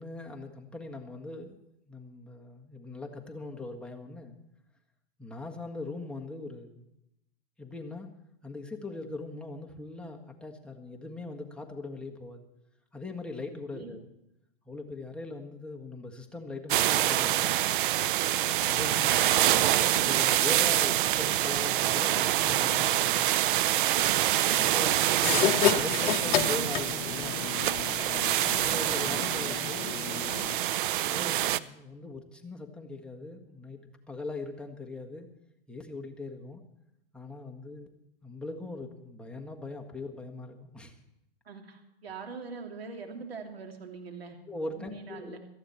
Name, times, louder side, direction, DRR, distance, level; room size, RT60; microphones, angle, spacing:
voice 1, 0.0-1.6 1.9-4.4 5.2-6.8 7.6-8.1 8.4-12.4 12.9-14.1 14.6-17.5 18.6-19.0 19.5-24.0 24.5-27.6 28.4-29.9 31.0-33.8 34.1-35.3 35.7-36.6 37.1-37.9 38.2-40.9 44.5-45.4, left 2 dB, 5° left, 0 dB, 1.6 m, -40 dB
sound 1, 16.7-31.6, right 13 dB, 60° right, 0.6 m, -26 dB
voice 2, 18.6-19.1 25.4-25.8 29.2-29.3 41.4-44.4 44.7-45.4, right 4 dB, 85° right, 3 dB, 2.9 m, -43 dB
sound 2, 25.2-30.6, left 12 dB, 45° left, 1.0 m, -31 dB
17.5 x 14.0 x 4.4 m, 0.87 s
hypercardioid pair, 115°, 30 cm